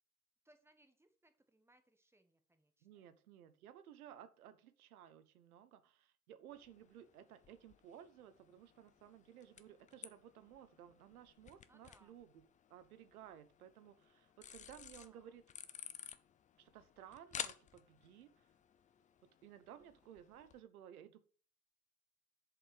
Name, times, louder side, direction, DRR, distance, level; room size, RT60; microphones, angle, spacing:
voice 1, 0.4-3.1 11.6-12.2 14.7-15.4 19.7-20.0, right 1 dB, 5° right, 8 dB, 1.2 m, -71 dB
voice 2, 2.8-12.4 12.7-15.4 16.6-18.3 19.4-21.2, right 10 dB, 70° right, 12 dB, 1.2 m, -57 dB
sound 1, 6.5-20.6, left 9 dB, 15° left, 0.5 m, -54 dB
7.2 x 5.3 x 6.7 m, 0.41 s
hypercardioid pair, 100°, 45 cm